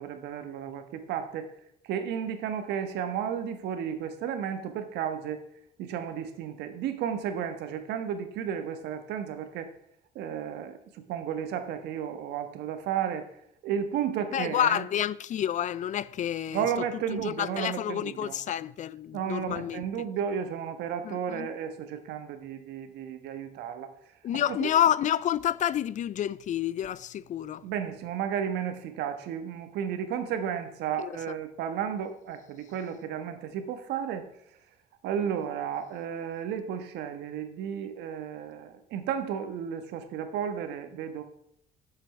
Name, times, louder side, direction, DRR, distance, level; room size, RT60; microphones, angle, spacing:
voice 1, 0.0-1.5 1.8-5.4 5.8-9.7 10.1-13.3 13.6-14.9 16.5-18.4 19.1-23.9 24.3-24.7 27.6-34.3 35.0-41.2, right 8 dB, 85° right, 1.4 m, -33 dB
voice 2, 14.3-16.7 17.2-19.8 21.0-21.5 24.2-27.6 31.0-31.1, left 10 dB, 45° left, 0.4 m, -29 dB
7.6 x 7.4 x 7.0 m
cardioid pair, 110°, 17 cm